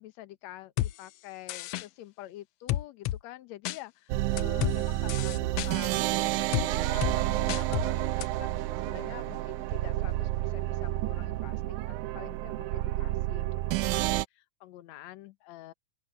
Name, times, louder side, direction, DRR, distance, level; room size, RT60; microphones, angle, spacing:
voice 1, 0.0-15.7, left 15 dB, 70° left, 2.1 m, -47 dB
sound 1, 0.8-0.9 1.5-1.9 2.7-3.2 3.7-3.8 4.4-4.8 5.1-5.7 6.5-6.7 7.0-7.2 7.5-7.9 8.2-8.3, left 14 dB, 85° left, 1.4 m, -30 dB
sound 2, 4.1-14.2, right 16 dB, 80° right, 2.0 m, -30 dB
open air
omnidirectional pair, 3.5 m